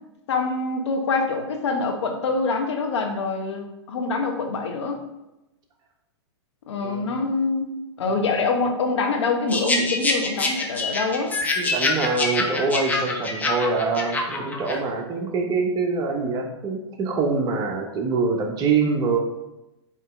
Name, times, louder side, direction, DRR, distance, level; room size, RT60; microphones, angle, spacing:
voice 1, 0.3-5.0 6.7-7.7 8.0-11.3, left 3 dB, 75° left, 3 dB, 1.1 m, -25 dB
voice 2, 6.8-7.2 8.1-8.2 11.6-19.2, right 4 dB, 25° right, 2 dB, 1.0 m, -25 dB
sound 1, 9.5-14.8, left 2 dB, 10° left, 0.7 m, -26 dB
8.5 x 3.0 x 3.7 m, 0.94 s
hypercardioid pair, 120°, 15 cm